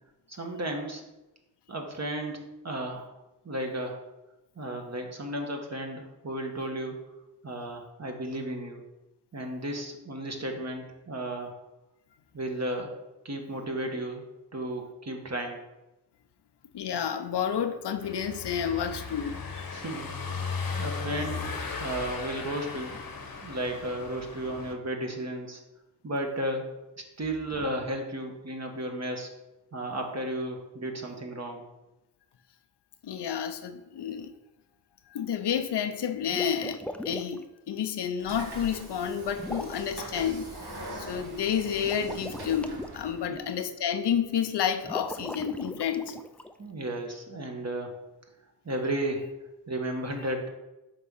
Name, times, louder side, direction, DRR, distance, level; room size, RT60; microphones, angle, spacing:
voice 1, 0.3-1.1 1.7-3.1 3.4-4.0 4.6-6.9 7.4-8.8 9.3-11.6 12.3-13.0 13.2-14.2 14.5-15.6 19.7-20.1 20.8-21.4 21.8-23.0 23.4-25.6 26.0-26.7 27.2-29.3 29.7-31.6 43.3-43.4 46.6-48.0 48.6-49.3 49.7-50.5, right 1 dB, 40° right, 2 dB, 1.2 m, -34 dB
voice 2, 16.7-19.7 33.0-34.3 35.1-40.5 41.1-46.2, left 8 dB, 80° left, 9 dB, 0.6 m, -30 dB
Car passing by / Engine, 18.0-24.7, left 5 dB, 60° left, 1.0 m, -36 dB
sound 1, 36.2-37.4 39.4-39.9 41.8-42.9 44.8-46.5, left 1 dB, 5° left, 0.4 m, -39 dB
Train / Sliding door, 38.2-43.3, right 1 dB, 70° right, 1.5 m, -42 dB
5.3 x 3.7 x 5.5 m, 0.98 s
cardioid pair, 60°, 40 cm